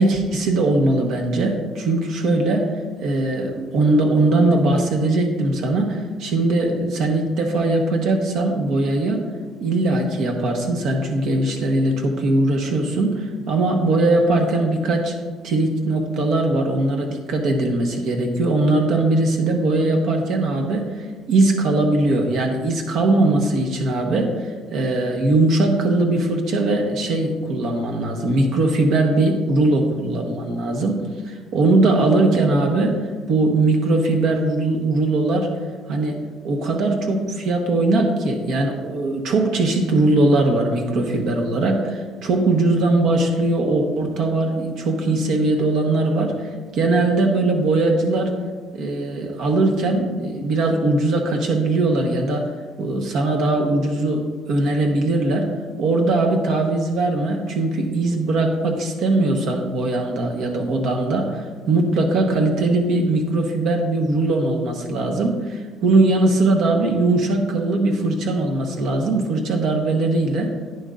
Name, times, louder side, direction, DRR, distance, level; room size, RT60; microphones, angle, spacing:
voice 1, 0.0-2.7 3.0-9.2 9.6-15.1 15.4-35.5 35.9-36.2 36.4-48.3 48.7-52.5 52.8-55.5 55.8-70.5, right 2 dB, 60° right, 2 dB, 1.2 m, -20 dB
11.0 x 9.4 x 2.5 m, 1.5 s
cardioid pair, 140°, 0 cm